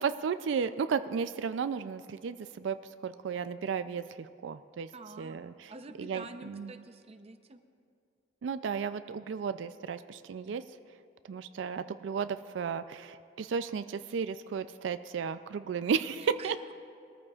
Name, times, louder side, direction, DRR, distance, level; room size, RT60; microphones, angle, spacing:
voice 1, 0.0-2.8 3.0-4.9 5.2-5.7 6.0-6.7 8.4-10.6 11.3-16.6, right 6 dB, 85° right, 12 dB, 0.4 m, -34 dB
voice 2, 4.9-5.4 5.7-7.6 16.2-16.7, right 3 dB, 35° right, 8 dB, 0.6 m, -47 dB
21.5 x 14.0 x 2.4 m, 2.4 s
head